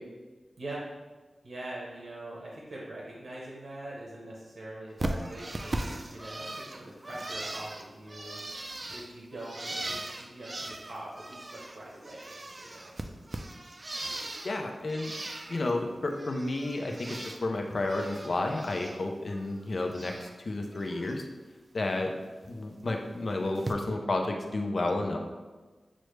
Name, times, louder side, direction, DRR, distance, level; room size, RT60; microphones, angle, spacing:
voice 1, 1.4-8.4 8.9-12.9, right 1 dB, 80° right, -5 dB, 0.9 m, -43 dB
Bird, 5.0-11.8 12.0-14.6 14.9-15.7 16.1-17.4 17.7-19.0 19.3-20.3 20.7-21.1 22.4-22.5 23.5-23.7, right 1 dB, 40° right, 0.4 m, -39 dB
voice 2, 14.4-15.1 15.5-21.2 21.7-22.1 22.5-25.2, left 2 dB, 60° left, 3 dB, 0.5 m, -31 dB
6.2 x 2.1 x 3.2 m, 1.3 s
cardioid pair, 60°, 0 cm